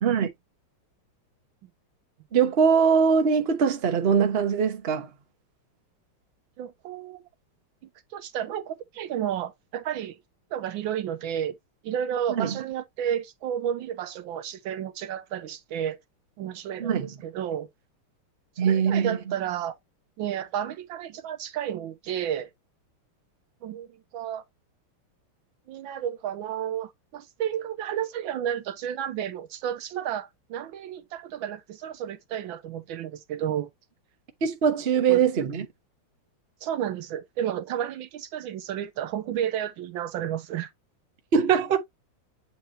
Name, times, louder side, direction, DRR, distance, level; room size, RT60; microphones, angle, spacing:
voice 1, 2.3-5.1 12.3-12.6 16.8-17.1 18.6-19.2 34.4-35.7 41.3-41.8, right 6 dB, 40° right, 0.9 m, -22 dB
voice 2, 6.6-7.2 8.1-10.2 10.5-11.5 11.8-16.0 16.4-17.7 18.6-19.8 20.2-22.5 23.6-24.4 25.7-33.7 35.1-35.2 36.6-40.7 41.5-41.6, right 10 dB, 75° right, 1.3 m, -32 dB
7.9 x 3.0 x 4.1 m
omnidirectional pair, 2.3 m